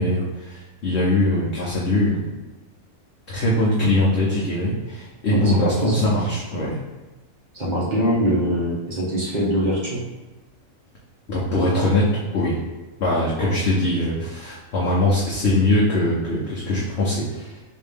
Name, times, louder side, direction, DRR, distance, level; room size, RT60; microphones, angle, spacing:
voice 1, 0.0-2.3 3.3-6.8 11.3-12.6 13.0-17.6, left 1 dB, 55° left, -6 dB, 0.9 m, -22 dB
voice 2, 5.3-6.1 7.5-10.0, equal, 35° right, -6 dB, 1.0 m, -23 dB
4.2 x 2.6 x 3.4 m, 1.1 s
omnidirectional pair, 1.5 m